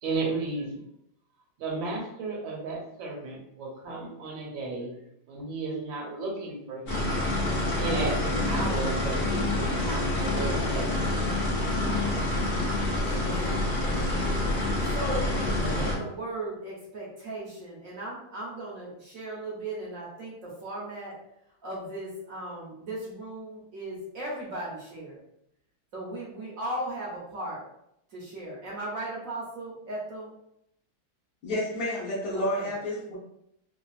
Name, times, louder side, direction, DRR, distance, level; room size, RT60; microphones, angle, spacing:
voice 1, 0.0-0.8 1.6-5.0 5.3-7.2 7.8-11.0 15.5-16.0, right 3 dB, 75° right, -1 dB, 1.5 m, -34 dB
sound 1, 6.9-15.9, left 2 dB, 85° left, 0.5 m, -27 dB
voice 2, 13.0-14.3 14.9-21.1 21.6-25.2 25.9-27.6 28.1-30.3 32.3-32.7, right 1 dB, 55° right, -5 dB, 1.0 m, -37 dB
voice 3, 31.4-33.2, left 1 dB, 65° left, -8 dB, 1.0 m, -30 dB
3.3 x 2.4 x 2.3 m, 0.78 s
omnidirectional pair, 2.2 m